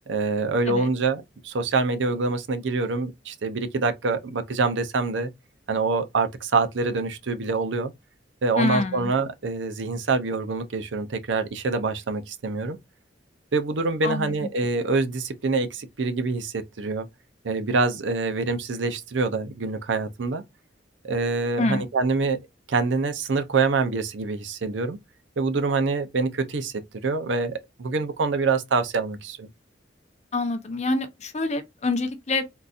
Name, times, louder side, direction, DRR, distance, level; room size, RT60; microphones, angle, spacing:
voice 1, 0.1-5.3 5.7-7.9 8.4-12.8 13.5-17.1 17.4-20.4 21.0-22.4 22.7-25.0 25.4-26.7 27.0-29.5, right 3 dB, 85° right, 0.6 m, -25 dB
voice 2, 8.6-9.1 14.0-14.3 21.6-21.8 30.3-32.5, left 2 dB, 40° left, 0.7 m, -26 dB
3.8 x 2.6 x 2.4 m
head